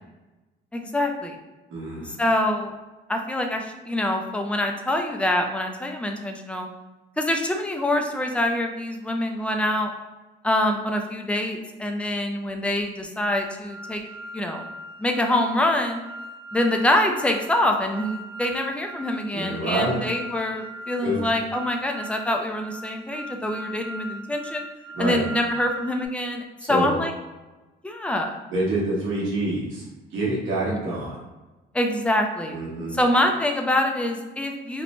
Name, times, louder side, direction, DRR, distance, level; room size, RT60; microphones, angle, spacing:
voice 1, 0.7-1.4 2.0-2.7 3.1-6.7 7.2-9.9 10.4-14.0 14.3-14.7 15.0-16.0 16.5-24.6 25.0-27.1 27.8-28.4 30.7-30.8 31.7-32.6 32.9-34.8, left 1 dB, 5° left, 3 dB, 0.3 m, -25 dB
voice 2, 1.7-2.1 19.3-20.0 21.0-21.1 24.9-25.2 26.6-26.9 28.5-29.8 30.1-31.1 32.5-32.9, right 1 dB, 75° right, -6 dB, 1.0 m, -26 dB
sound 1, 13.3-26.1, right 1 dB, 55° left, 0.5 m, -39 dB
2.6 x 2.0 x 2.9 m, 1.1 s
cardioid pair, 90°, 20 cm